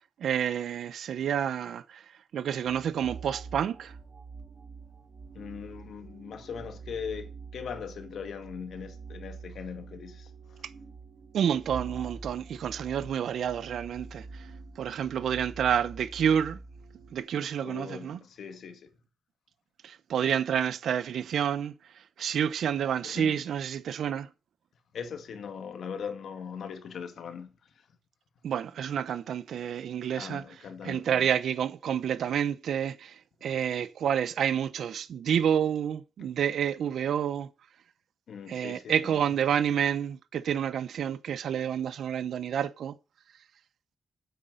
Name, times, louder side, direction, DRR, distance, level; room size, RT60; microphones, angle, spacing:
voice 1, 0.2-2.0 2.3-3.9 11.3-14.5 14.8-16.6 17.1-18.2 19.8-21.7 22.2-24.3 28.4-30.4 30.8-33.1 33.4-37.5 38.5-42.9, right 8 dB, 70° right, 0.8 m, -29 dB
sound 1, 2.7-17.2, right 4 dB, 40° right, 3.5 m, -45 dB
voice 2, 5.3-10.6 17.6-18.9 23.0-23.4 24.9-27.9 30.2-31.3 36.2-36.3 38.3-39.2, left 7 dB, 65° left, 1.9 m, -40 dB
9.5 x 8.3 x 6.5 m
wide cardioid pair, 160°, 0 cm